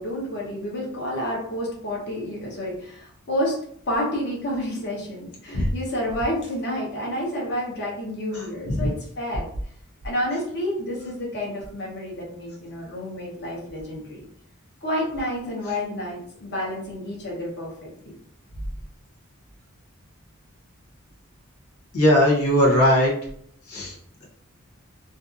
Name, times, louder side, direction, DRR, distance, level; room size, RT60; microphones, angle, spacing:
voice 1, 0.0-3.6 3.9-9.5 10.0-14.2 14.8-18.1, left 1 dB, 50° left, -2 dB, 0.8 m, -29 dB
voice 2, 8.3-8.9 21.9-23.1 23.7-23.9, left 1 dB, 90° left, -2 dB, 0.7 m, -19 dB
2.6 x 2.4 x 2.5 m, 0.66 s
head